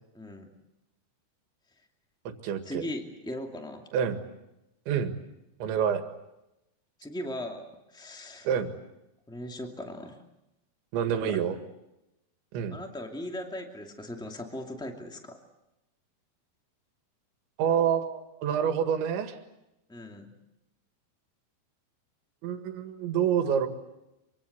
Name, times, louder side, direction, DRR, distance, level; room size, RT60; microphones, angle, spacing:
voice 1, 0.1-0.5 2.6-3.8 7.0-8.5 9.3-10.2 11.1-11.4 12.7-15.4 19.9-20.3, left 1 dB, 5° left, 3 dB, 0.4 m, -38 dB
voice 2, 2.4-2.9 3.9-4.2 4.9-5.1 5.6-6.0 8.5-8.7 10.9-11.6 12.5-12.8 17.6-19.4 22.4-23.7, right 8 dB, 80° right, 8 dB, 4.1 m, -27 dB
25.5 x 24.5 x 8.1 m, 0.92 s
omnidirectional pair, 5.2 m